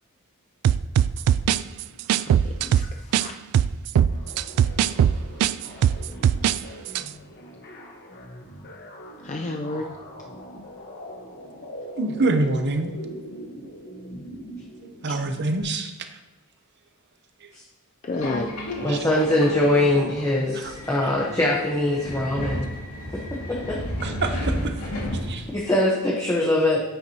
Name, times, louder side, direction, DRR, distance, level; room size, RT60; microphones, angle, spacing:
sound 1, 0.6-3.3 3.5-6.6 6.9-7.1, right 9 dB, 80° right, 0.3 m, -20 dB
voice 1, 2.2-3.3 9.2-9.9 18.0-18.5, left 2 dB, 35° left, 2 dB, 0.4 m, -31 dB
sound 2, 4.0-15.6, equal, 50° left, 1.3 m, -41 dB
voice 2, 12.0-12.9 14.8-15.9 17.4-17.5 18.9-19.0 20.5-20.7 24.0-24.8 25.2-25.5, right 2 dB, 50° right, 7 dB, 0.8 m, -26 dB
Subway metro underground, 18.1-25.7, equal, 80° left, 2.1 m, -32 dB
voice 3, 18.8-22.7 23.5-23.8 25.5-26.8, left 1 dB, 15° left, -4 dB, 1.0 m, -22 dB
9.4 x 7.9 x 2.9 m, 1.0 s
head